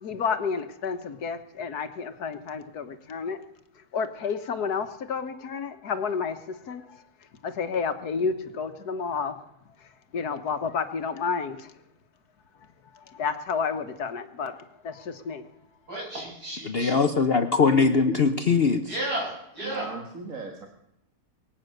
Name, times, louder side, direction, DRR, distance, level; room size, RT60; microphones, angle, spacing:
voice 1, 0.0-3.4 3.9-6.4 6.7-6.8 7.4-9.4 10.1-11.7 13.2-14.5 14.8-15.4, left 5 dB, 70° left, 9 dB, 1.7 m, -30 dB
voice 2, 15.9-17.0 18.9-19.9, right 1 dB, 70° right, -3 dB, 7.8 m, -33 dB
voice 3, 16.6-18.9, left 4 dB, 50° left, 8 dB, 0.8 m, -21 dB
voice 4, 19.6-20.7, right 4 dB, 55° right, 3 dB, 2.0 m, -37 dB
23.0 x 8.9 x 6.6 m, 0.82 s
omnidirectional pair, 1.7 m